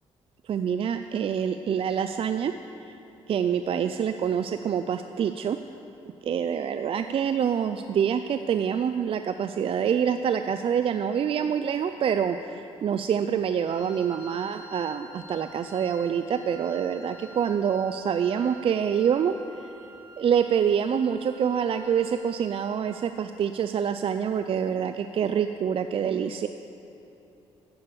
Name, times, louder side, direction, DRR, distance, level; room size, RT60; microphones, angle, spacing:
voice 1, 0.5-2.5 2.8-2.9 3.3-5.6 6.2-19.7 20.2-26.5, right 8 dB, 50° right, 9 dB, 0.4 m, -26 dB
Wind instrument woodwind instrument, 13.6-22.9, right 2 dB, 85° left, 2.2 m, -49 dB
11.0 x 8.8 x 7.0 m, 2.9 s
cardioid pair, 80°, 12 cm